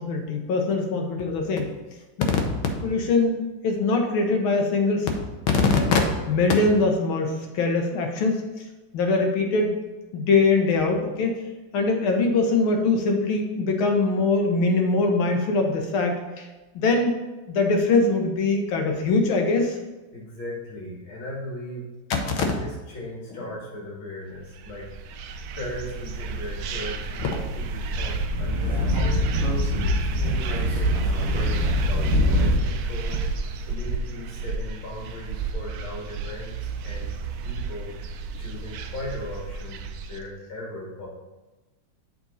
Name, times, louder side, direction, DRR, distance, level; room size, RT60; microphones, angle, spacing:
voice 1, 0.0-1.7 2.2-2.3 2.8-5.1 5.5-6.0 6.3-8.4 8.9-9.8 10.1-11.3 11.7-16.5 16.8-17.2 17.5-19.8 22.1-22.5, left 3 dB, 90° left, 3 dB, 1.8 m, -22 dB
voice 2, 20.1-21.9 22.3-24.9 25.6-29.6 30.1-33.2 33.6-37.1 37.4-37.9 38.4-39.8 40.1-41.1, left 1 dB, 70° left, -5 dB, 3.1 m, -37 dB
sound 1, 24.5-40.2, right 4 dB, 85° right, 0.8 m, -31 dB
Speech / Wind, 27.9-32.8, left 1 dB, 40° left, 2.6 m, -24 dB
7.5 x 5.2 x 4.0 m, 1.1 s
omnidirectional pair, 2.2 m